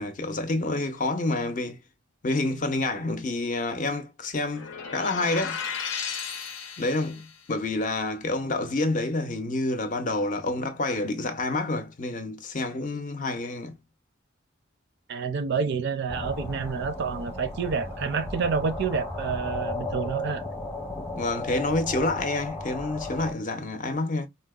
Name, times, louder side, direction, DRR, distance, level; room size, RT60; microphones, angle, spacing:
voice 1, 0.0-1.8 2.2-5.6 6.8-13.8 21.2-24.3, left 2 dB, 40° left, 0.6 m, -28 dB
sound 1, 4.5-7.3, left 6 dB, 85° left, 0.7 m, -34 dB
voice 2, 15.1-20.4, right 5 dB, 55° right, 0.4 m, -28 dB
sound 2, 16.1-23.3, left 2 dB, 10° left, 0.7 m, -35 dB
3.8 x 2.0 x 2.3 m
head